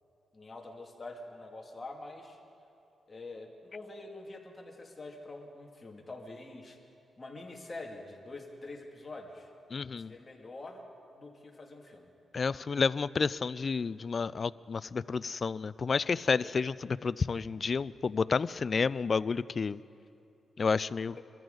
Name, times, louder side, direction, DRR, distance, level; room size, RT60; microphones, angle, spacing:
voice 1, 0.3-2.4 3.1-6.8 7.2-9.5 10.0-10.8 11.1-12.1 16.3-16.5, left 2 dB, 30° left, 0 dB, 2.3 m, -45 dB
voice 2, 9.7-10.1 12.3-19.8 20.6-21.2, left 5 dB, 45° left, 18 dB, 0.3 m, -30 dB
23.5 x 14.0 x 3.9 m, 2.8 s
cardioid pair, 85°, 0 cm